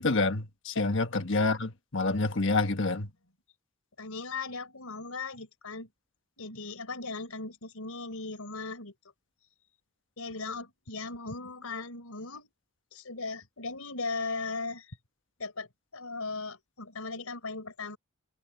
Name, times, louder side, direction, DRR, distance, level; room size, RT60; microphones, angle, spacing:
voice 1, 0.0-3.1, left 3 dB, 60° left, 1.4 m, -28 dB
voice 2, 4.0-5.9 6.4-8.9 10.2-12.5 12.9-15.0 15.4-18.0, left 3 dB, 90° left, 4.1 m, -38 dB
head